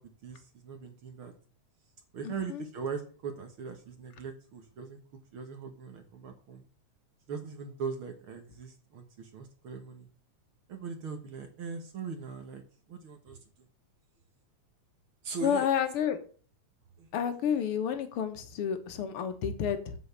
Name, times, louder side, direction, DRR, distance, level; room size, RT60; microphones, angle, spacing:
voice 1, 0.0-1.3 2.1-5.0 5.3-6.6 7.3-10.1 10.7-12.6 12.9-13.7 15.2-15.7 17.0-17.2, right 5 dB, 50° right, 6 dB, 1.9 m, -40 dB
voice 2, 2.2-2.6 15.4-16.2 17.1-20.0, left 8 dB, 55° left, 8 dB, 1.9 m, -30 dB
7.9 x 6.2 x 8.0 m, 0.41 s
omnidirectional pair, 3.4 m